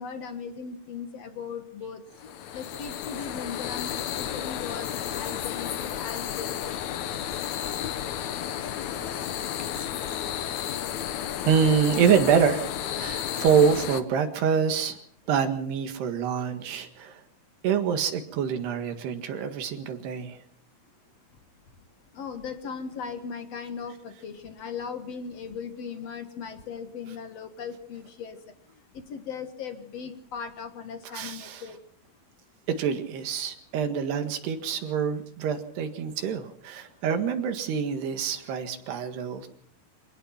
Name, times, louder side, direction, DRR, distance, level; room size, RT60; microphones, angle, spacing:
voice 1, 0.0-6.8 22.1-28.4 29.1-31.8, left 6 dB, 60° left, 8 dB, 1.7 m, -38 dB
sound 1, 2.1-14.0, left 10 dB, 85° left, 1.6 m, -32 dB
voice 2, 11.5-12.7 13.0-15.0 15.3-17.2 17.6-20.4 31.1-31.6 32.7-39.5, right 7 dB, 70° right, 7 dB, 3.8 m, -26 dB
25.5 x 18.0 x 5.8 m, 0.62 s
omnidirectional pair, 5.0 m